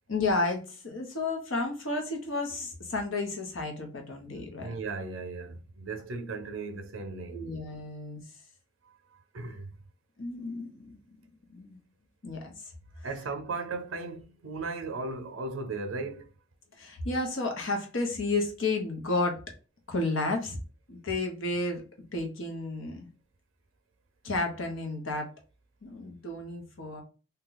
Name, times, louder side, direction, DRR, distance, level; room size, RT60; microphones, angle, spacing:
voice 1, 0.1-4.7 7.3-8.2 10.2-11.2 11.5-11.8 12.2-12.7 16.8-19.4 19.9-20.6 20.9-21.8 22.1-23.1 24.2-25.3 25.8-27.0, left 2 dB, 80° left, 0.9 m, -32 dB
voice 2, 4.6-7.4 9.3-9.7 13.0-16.3, right 3 dB, 85° right, 0.6 m, -36 dB
2.7 x 2.3 x 3.8 m
head